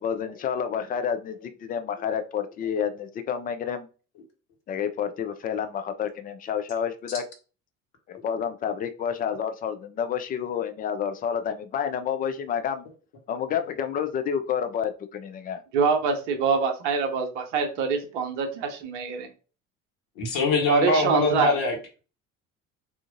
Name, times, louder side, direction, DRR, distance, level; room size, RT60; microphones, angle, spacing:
voice 1, 0.0-3.9 4.7-7.2 8.1-12.9 13.3-15.6, left 8 dB, 25° left, 9 dB, 0.4 m, -29 dB
voice 2, 15.7-19.3 20.7-21.5, right 5 dB, 65° right, 5 dB, 0.8 m, -25 dB
voice 3, 20.2-21.8, left 3 dB, 55° left, 2 dB, 1.3 m, -23 dB
3.7 x 2.4 x 2.5 m, 0.35 s
figure-of-eight pair, 60°, 39 cm